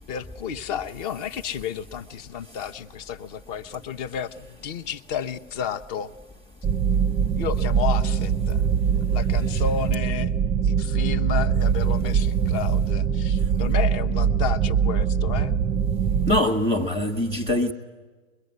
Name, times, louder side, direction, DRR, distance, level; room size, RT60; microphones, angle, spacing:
voice 1, 0.1-6.1 7.3-10.3 10.6-15.6, left 8 dB, 35° left, 11 dB, 1.0 m, -32 dB
sound 1, 6.6-16.4, right 7 dB, 10° right, 0.7 m, -22 dB
voice 2, 16.3-17.7, left 1 dB, 10° left, 4 dB, 1.2 m, -23 dB
23.0 x 22.5 x 9.4 m, 1.3 s
hypercardioid pair, 125°, 37 cm